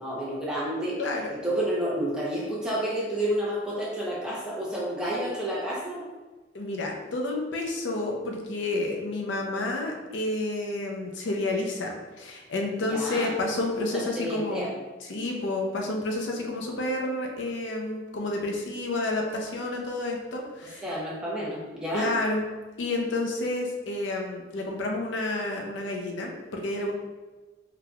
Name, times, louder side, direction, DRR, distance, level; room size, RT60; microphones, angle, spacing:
voice 1, 0.0-1.0 1.3-6.0 12.9-13.4 13.8-14.7 20.8-22.1, right 1 dB, 5° right, -6 dB, 0.7 m, -30 dB
voice 2, 1.0-1.3 6.5-14.7 15.0-20.8 21.9-22.4 22.8-26.9, left 2 dB, 80° left, 1 dB, 0.5 m, -30 dB
3.8 x 2.8 x 2.3 m, 1.2 s
head